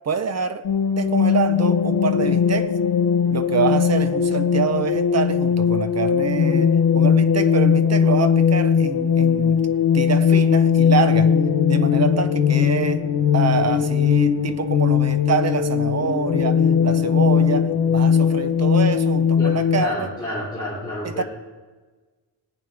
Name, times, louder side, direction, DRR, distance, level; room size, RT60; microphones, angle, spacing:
voice 1, 0.0-0.6 0.9-2.7 3.3-9.6 9.9-11.3 11.7-13.1 13.3-20.1 21.0-21.2, right 6 dB, 40° right, 0.7 m, -26 dB
sound 1, 0.7-19.8, left 7 dB, 65° left, 0.9 m, -19 dB
voice 2, 19.4-21.2, left 2 dB, 10° left, 2.8 m, -29 dB
18.5 x 9.1 x 3.4 m
wide cardioid pair, 150°, 41 cm